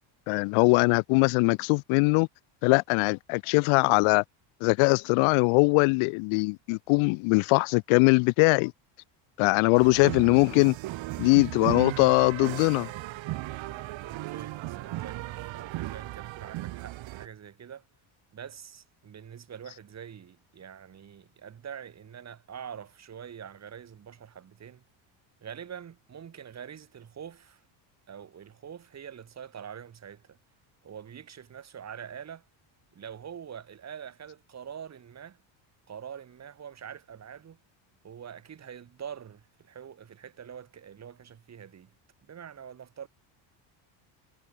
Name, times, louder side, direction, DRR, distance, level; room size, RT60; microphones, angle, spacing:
voice 1, 0.3-2.3 2.6-4.2 4.6-8.7 9.4-10.7 11.2-12.9, left 31 dB, 85° left, 0.6 m, -22 dB
sound 1, 9.7-17.3, right 17 dB, 65° right, 4.4 m, -36 dB
voice 2, 13.6-15.2 15.5-17.8 18.3-24.9 25.4-27.6 28.1-30.4 30.8-32.5 32.9-35.4 35.9-37.6 38.0-41.9 42.2-43.1, right 8 dB, 35° right, 3.6 m, -44 dB
cardioid pair, 140°, 48 cm